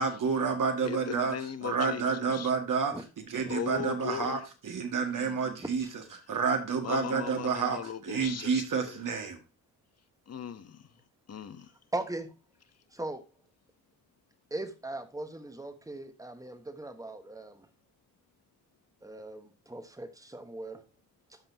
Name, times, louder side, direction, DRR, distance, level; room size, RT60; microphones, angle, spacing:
voice 1, 0.0-1.4 1.6-5.8 6.3-9.4, right 5 dB, 55° right, 1.9 m, -29 dB
voice 2, 0.8-2.5 3.4-4.4 5.2-5.4 6.8-9.0 10.3-10.9 11.3-11.7, left 8 dB, 40° left, 0.9 m, -38 dB
voice 3, 5.6-5.9 11.9-12.3 12.9-13.2 14.5-17.7 19.0-20.8, right 2 dB, 10° right, 1.2 m, -39 dB
13.0 x 5.2 x 2.8 m
cardioid pair, 115°, 38 cm